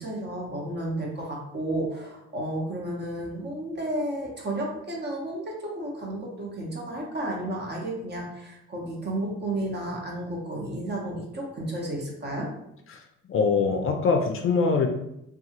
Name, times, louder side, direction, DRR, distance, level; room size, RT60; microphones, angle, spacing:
voice 1, 0.0-12.5, right 1 dB, 35° right, -1 dB, 0.9 m, -32 dB
voice 2, 13.3-14.9, left 4 dB, 45° left, 3 dB, 0.4 m, -23 dB
2.6 x 2.3 x 2.8 m, 0.82 s
cardioid pair, 90°, 30 cm